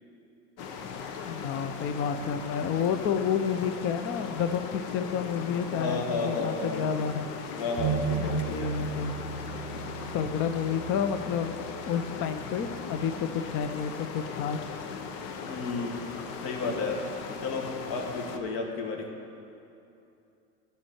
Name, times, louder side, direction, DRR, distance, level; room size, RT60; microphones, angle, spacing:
sound 1, 0.6-18.4, left 6 dB, 75° left, 1.0 m, -39 dB
voice 1, 1.2-7.3 8.2-9.1 10.1-11.6 11.9-14.6, left 7 dB, 30° left, 9 dB, 0.5 m, -30 dB
voice 2, 5.7-6.9 7.6-8.7 15.5-16.0 16.4-17.0 17.4-19.1, left 3 dB, 60° left, 2 dB, 1.7 m, -32 dB
sound 2, 7.8-13.5, right 6 dB, 35° right, 0.5 m, -36 dB
12.0 x 4.4 x 7.1 m, 2.7 s
supercardioid pair, 105°, 48 cm